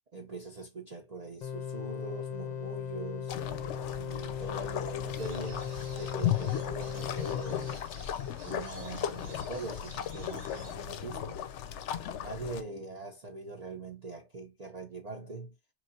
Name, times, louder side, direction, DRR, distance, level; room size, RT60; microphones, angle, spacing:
voice 1, 0.1-3.3 4.0-7.9 8.4-11.4 12.2-15.5, right 3 dB, 40° right, 0.7 m, -42 dB
sound 1, 1.4-7.8, left 7 dB, 50° left, 0.5 m, -38 dB
sound 2, 3.3-12.6, left 10 dB, 75° left, 0.9 m, -36 dB
sound 3, 5.2-10.7, right 3 dB, 80° right, 1.6 m, -54 dB
4.7 x 3.2 x 2.7 m
omnidirectional pair, 1.3 m